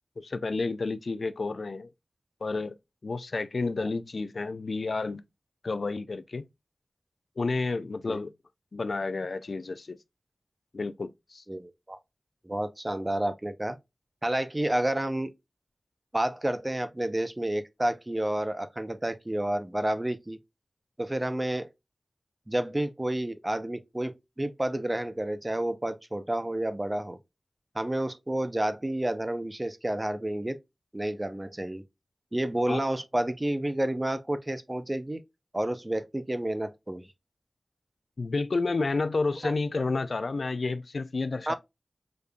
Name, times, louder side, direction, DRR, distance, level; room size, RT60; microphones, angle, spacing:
voice 1, 0.2-1.9 2.4-2.8 3.0-5.2 5.6-6.5 7.4-8.3 8.7-10.0 10.7-11.4 32.7-32.8 38.2-41.5, left 3 dB, 75° left, 0.3 m, -30 dB
voice 2, 11.5-12.0 12.4-13.8 14.2-15.3 16.1-20.4 21.0-21.7 22.5-27.2 27.7-30.6 30.9-31.8 32.3-35.2 35.5-37.1 39.4-39.5 41.5-41.6, right 1 dB, 25° right, 0.6 m, -30 dB
5.1 x 2.4 x 2.2 m
wide cardioid pair, 45°, 0 cm